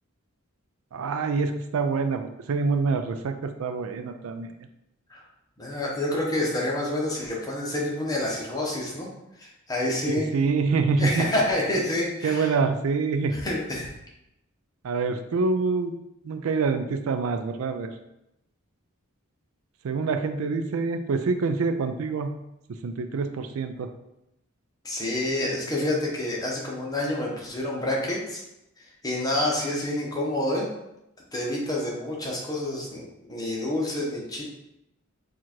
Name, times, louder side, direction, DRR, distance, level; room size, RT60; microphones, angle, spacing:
voice 1, 0.9-4.5 10.0-11.3 12.2-13.4 14.8-15.9 16.2-17.9 19.8-22.3 22.8-23.9, right 4 dB, 75° right, 8 dB, 0.4 m, -26 dB
voice 2, 5.6-9.1 9.4-10.3 11.0-12.5 13.3-13.9 24.8-28.4 29.0-30.7 31.3-33.0 33.3-34.4, left 1 dB, 15° left, -3 dB, 0.9 m, -28 dB
4.6 x 2.5 x 4.3 m, 0.86 s
head